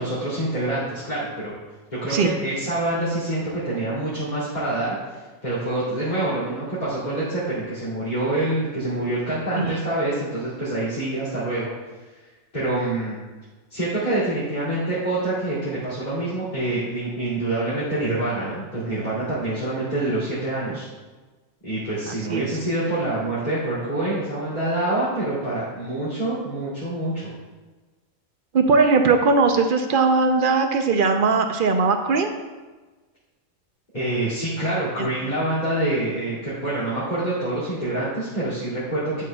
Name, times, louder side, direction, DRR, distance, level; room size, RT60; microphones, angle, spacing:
voice 1, 0.0-1.5 1.9-11.7 12.1-12.2 12.5-13.2 13.7-20.9 21.6-27.3 33.9-39.2, right 1 dB, 30° left, -11 dB, 2.6 m, -26 dB
voice 2, 22.1-22.4 28.5-32.3 35.0-35.1, right 4 dB, 60° right, 6 dB, 0.5 m, -19 dB
11.5 x 6.5 x 2.3 m, 1.3 s
omnidirectional pair, 1.4 m